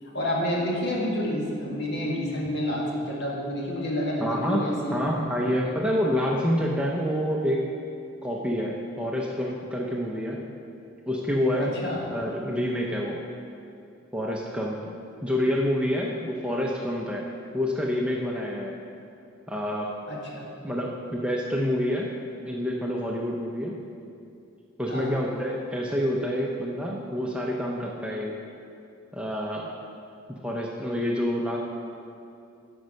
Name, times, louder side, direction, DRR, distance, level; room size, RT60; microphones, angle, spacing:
voice 1, 0.0-5.0 11.6-12.1 20.1-20.5 24.9-25.2, equal, 55° left, -3 dB, 1.7 m, -29 dB
voice 2, 4.2-7.6 8.2-10.4 11.1-11.7 12.1-13.2 14.1-14.8 15.2-17.2 17.5-18.8 19.5-19.9 20.6-22.1 22.4-23.7 24.8-28.3 29.1-29.7 30.3-31.6, equal, 5° right, -2 dB, 0.6 m, -27 dB
9.3 x 5.3 x 6.4 m, 2.6 s
head